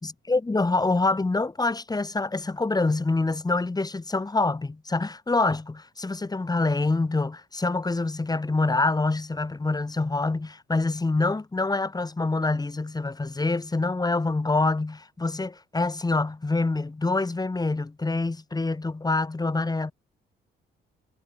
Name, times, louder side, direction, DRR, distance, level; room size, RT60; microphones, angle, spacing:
voice 1, 0.0-19.9, left 3 dB, 20° left, 3.9 m, -26 dB
cardioid pair, 90°, 20 cm